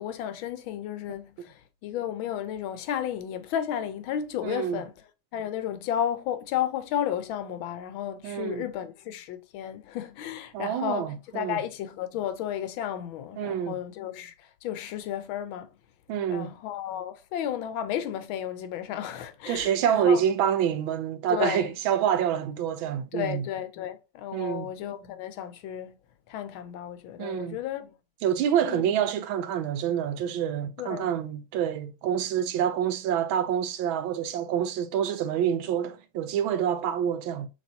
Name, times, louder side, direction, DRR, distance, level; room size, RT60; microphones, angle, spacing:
voice 1, 0.0-4.9 5.3-15.7 16.3-20.2 21.3-21.7 23.1-26.0 26.3-27.9 28.6-28.9 30.8-31.1, left 10 dB, 85° left, 1.5 m, -33 dB
voice 2, 4.4-4.8 8.2-8.6 10.5-11.6 13.4-13.8 16.1-16.5 19.5-23.5 24.3-24.7 27.2-27.6 28.2-37.5, right 9 dB, 90° right, 1.4 m, -27 dB
6.5 x 2.9 x 2.7 m
omnidirectional pair, 2.1 m